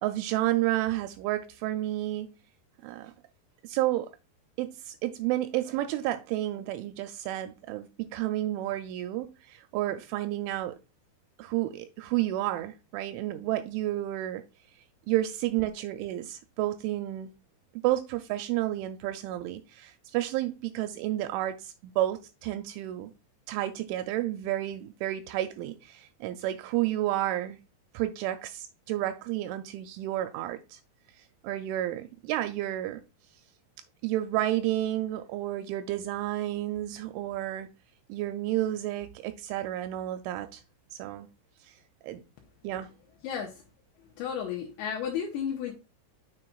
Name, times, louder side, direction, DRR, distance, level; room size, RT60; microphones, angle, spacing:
voice 1, 0.0-2.3 2.8-3.1 3.6-4.1 4.6-10.8 11.4-14.4 15.1-17.3 17.8-23.1 23.5-27.6 27.9-30.8 31.4-33.0 34.0-37.7 38.1-40.6 40.9-41.3 42.0-42.2 42.6-42.9, right 14 dB, 85° right, 2.9 m, -31 dB
voice 2, 43.2-43.6 44.2-45.7, left 8 dB, 75° left, 3.0 m, -33 dB
7.6 x 6.4 x 2.3 m
omnidirectional pair, 5.6 m